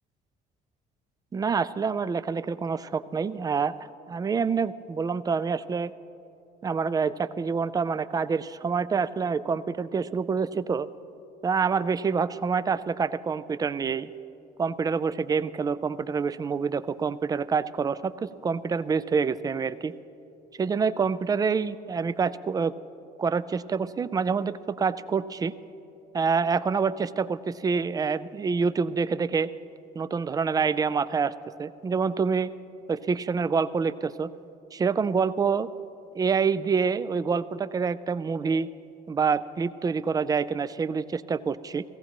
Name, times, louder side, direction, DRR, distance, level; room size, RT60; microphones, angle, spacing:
voice 1, 1.3-3.7 4.1-5.9 6.6-10.9 11.4-14.1 14.6-19.9 20.6-22.7 23.2-25.5 26.1-29.5 30.0-31.3 31.6-32.5 32.9-34.3 34.7-35.7 36.1-38.7 39.1-41.8, right 5 dB, 20° right, 15 dB, 0.3 m, -27 dB
17.5 x 15.5 x 3.0 m, 2.8 s
cardioid pair, 110°, 17 cm